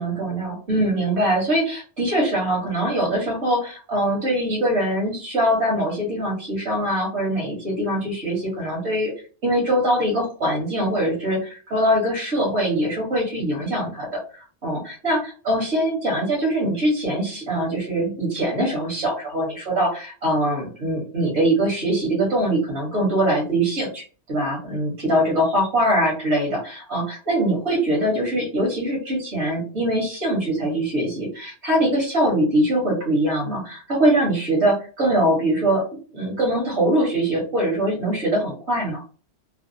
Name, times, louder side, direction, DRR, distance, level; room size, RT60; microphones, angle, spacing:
voice 1, 0.0-9.1 9.4-14.1 14.6-24.0 24.3-35.8 36.1-39.0, right 1 dB, 65° right, -2 dB, 1.6 m, -22 dB
3.2 x 2.3 x 2.7 m, 0.38 s
omnidirectional pair, 1.2 m